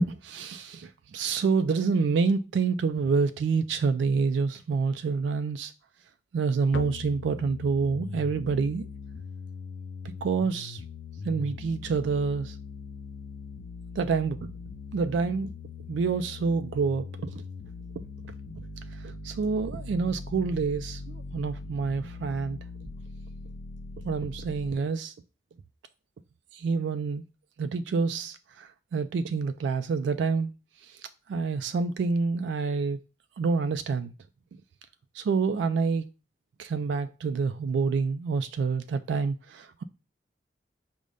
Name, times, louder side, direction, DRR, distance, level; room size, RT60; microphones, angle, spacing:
voice 1, 0.0-5.7 6.3-8.9 10.2-10.8 11.2-12.6 14.0-14.5 14.9-15.5 15.9-17.4 19.0-22.6 24.0-25.1 26.5-27.2 27.6-30.5 30.8-31.0 31.3-33.0 33.4-34.1 35.2-36.1 36.6-39.8, right 5 dB, 75° right, 0.3 m, -27 dB
sound 1, 6.7-24.7, left 4 dB, 70° left, 0.4 m, -41 dB
5.3 x 2.1 x 4.8 m
head